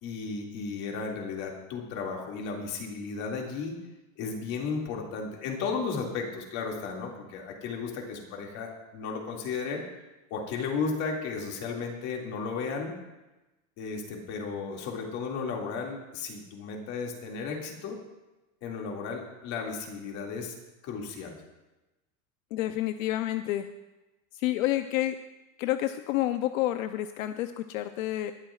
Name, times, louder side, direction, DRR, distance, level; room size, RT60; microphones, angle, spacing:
voice 1, 0.0-3.8 4.2-9.8 10.3-12.9 13.8-18.0 18.6-20.5 20.8-21.4, left 5 dB, 40° left, 0 dB, 2.3 m, -34 dB
voice 2, 22.5-23.7 24.3-25.2 25.6-28.3, left 14 dB, 75° left, 9 dB, 0.7 m, -29 dB
20.5 x 12.0 x 2.4 m, 1.1 s
supercardioid pair, 170°, 40 cm